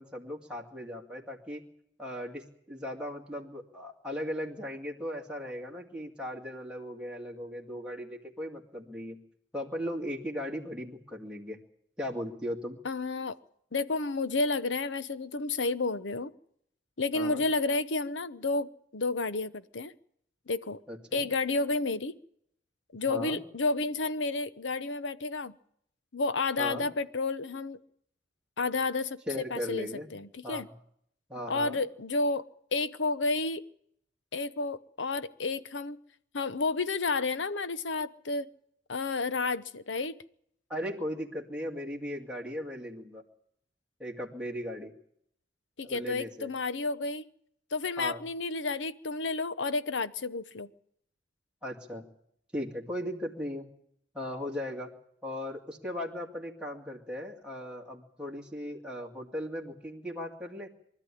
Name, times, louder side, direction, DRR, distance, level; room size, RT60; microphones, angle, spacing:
voice 1, 0.0-1.6 2.0-9.2 9.5-11.6 12.0-12.8 17.1-17.5 20.9-21.3 23.1-23.4 26.6-26.9 29.3-30.1 30.4-30.7 31.3-31.8 40.7-43.2 44.0-44.9 45.8-46.5 48.0-48.2 51.6-52.1 52.5-53.7 54.1-54.9 55.2-60.7, equal, 5° right, -2 dB, 2.3 m, -37 dB
voice 2, 12.8-13.4 13.7-16.3 17.0-19.9 20.5-20.8 21.1-22.2 22.9-25.5 26.1-27.8 28.6-30.7 31.5-32.4 32.7-33.6 34.3-36.0 36.3-38.5 38.9-40.1 45.8-47.3 47.7-50.7, left 3 dB, 80° left, 14 dB, 0.9 m, -31 dB
24.0 x 13.0 x 10.0 m, 0.72 s
head